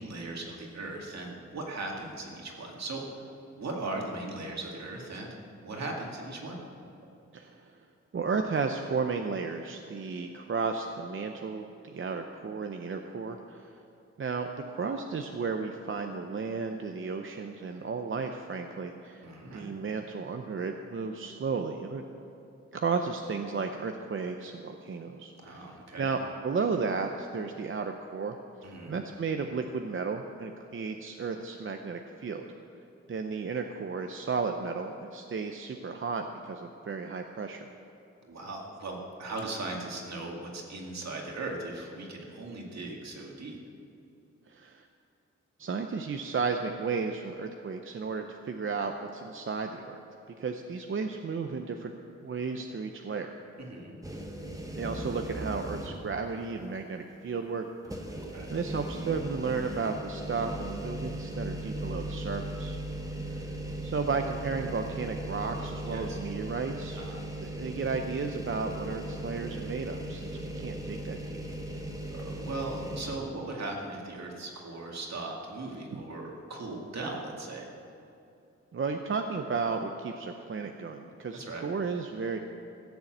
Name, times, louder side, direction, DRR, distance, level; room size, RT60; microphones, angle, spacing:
voice 1, 0.0-3.0 3.6-5.4 5.6-6.6 19.2-19.7 25.4-26.1 28.6-29.0 38.2-43.6 53.6-54.0 58.3-58.5 65.9-66.2 67.0-67.3 72.1-77.7 81.3-81.7, right 2 dB, 65° right, 0 dB, 2.2 m, -38 dB
voice 2, 7.3-7.8 8.1-13.7 14.2-19.3 19.5-22.0 22.7-26.2 26.4-32.4 33.1-37.6 44.5-44.9 45.6-50.0 50.4-51.9 52.2-53.3 54.8-58.0 58.5-62.8 63.2-63.5 63.8-67.0 67.4-71.4 75.9-76.0 78.7-82.4, right 4 dB, 45° right, 5 dB, 0.6 m, -33 dB
sound 1, 54.0-56.2 56.6-56.7 57.8-73.2, right 1 dB, 10° right, 1.1 m, -38 dB
15.5 x 7.0 x 7.9 m, 2.7 s
wide cardioid pair, 115°, 29 cm